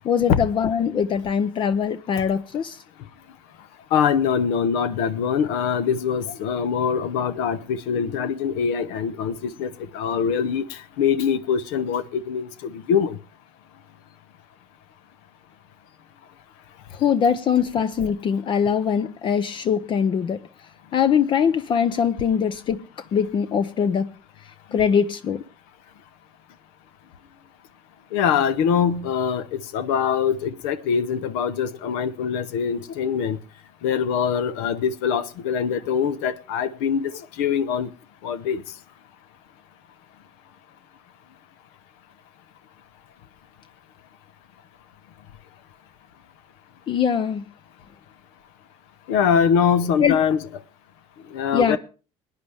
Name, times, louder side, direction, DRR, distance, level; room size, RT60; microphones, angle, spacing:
voice 1, 0.0-2.8 16.9-20.4 20.9-22.8 23.1-24.1 24.7-25.4 46.9-47.4 50.0-50.2 51.5-51.8, left 7 dB, 45° left, 0.6 m, -22 dB
voice 2, 3.9-13.2 28.1-33.4 33.8-37.1 37.4-37.9 38.2-38.6 49.1-50.4 51.3-51.8, left 7 dB, 85° left, 0.9 m, -23 dB
20.0 x 10.0 x 3.5 m
supercardioid pair, 90°, 11 cm